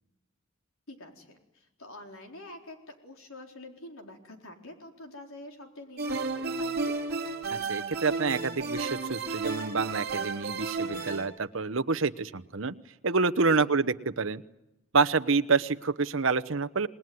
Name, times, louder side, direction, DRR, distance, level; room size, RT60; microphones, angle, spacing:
voice 1, 0.9-7.0 13.4-13.7, left 1 dB, 80° left, 3 dB, 4.3 m, -47 dB
sound 1, 6.0-11.3, right 3 dB, 45° right, 3.1 m, -32 dB
voice 2, 7.5-12.7 13.0-14.4 14.9-16.9, right 4 dB, 65° right, 11 dB, 1.0 m, -27 dB
28.0 x 20.0 x 9.6 m, 0.92 s
head